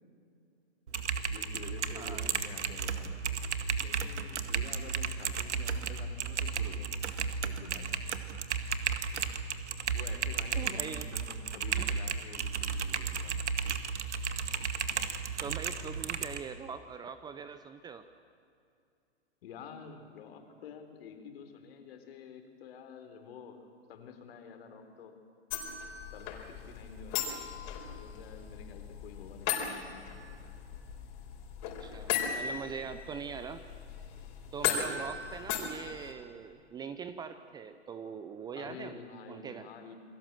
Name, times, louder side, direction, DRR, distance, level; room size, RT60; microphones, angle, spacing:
Typing, 0.9-16.4, right 6 dB, 80° right, 2.0 m, -34 dB
voice 1, 1.3-3.2 3.8-7.0 7.4-8.1 9.9-13.6 19.4-25.2 26.1-27.2 28.0-30.1 38.5-39.9, left 6 dB, 60° left, 6 dB, 4.0 m, -49 dB
voice 2, 1.9-2.3 10.6-11.1 11.8-12.0 15.4-18.0 31.7-33.6 34.5-39.0 39.3-39.7, right 6 dB, 10° right, 11 dB, 0.6 m, -42 dB
sound 1, 25.5-36.1, left 8 dB, 45° left, 4.7 m, -37 dB
29.0 x 21.0 x 7.6 m, 2.5 s
hypercardioid pair, 130°, 34 cm